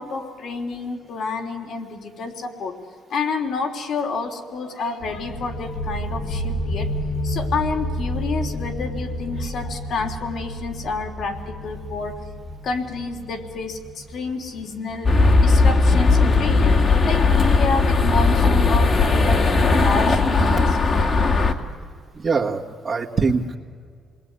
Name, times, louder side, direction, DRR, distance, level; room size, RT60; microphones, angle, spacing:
voice 1, 0.0-2.8 3.1-6.9 7.2-12.2 12.6-20.8 21.1-21.2, left 4 dB, 65° left, 3 dB, 3.4 m, -29 dB
sound 1, 5.0-16.4, equal, 85° left, 6.1 m, -31 dB
sound 2, 15.0-21.5, left 3 dB, 45° left, 2.3 m, -17 dB
voice 2, 22.1-23.6, right 4 dB, 40° right, -4 dB, 1.8 m, -23 dB
28.0 x 21.0 x 9.5 m, 2.1 s
cardioid pair, 95°, 0 cm